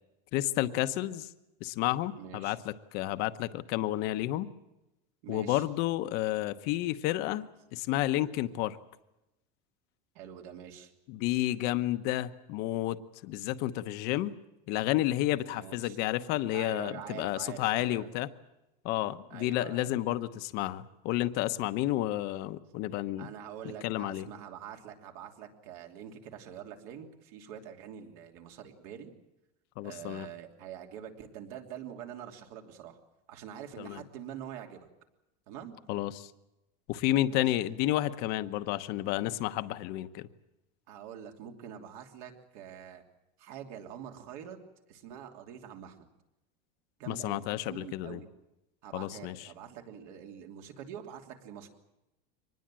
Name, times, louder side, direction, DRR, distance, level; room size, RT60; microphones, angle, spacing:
voice 1, 0.3-1.3 1.6-4.5 5.3-7.4 7.7-8.8 11.1-14.3 14.7-18.3 18.8-23.3 23.8-24.3 29.8-30.3 33.8-34.0 35.9-36.3 36.9-40.3 47.1-48.2 48.9-49.5, left 15 dB, 50° left, 11 dB, 1.0 m, -31 dB
voice 2, 2.2-2.6 5.2-5.6 10.1-10.9 15.5-16.0 16.5-18.1 19.3-19.9 23.2-29.1 29.8-33.0 33.3-34.9 35.5-35.8 37.3-37.5 40.9-43.0 43.4-44.6 44.9-46.1 47.0-48.3 48.8-51.7, right 9 dB, 65° right, 3 dB, 3.0 m, -45 dB
24.5 x 20.0 x 7.6 m, 0.94 s
cardioid pair, 165°, 21 cm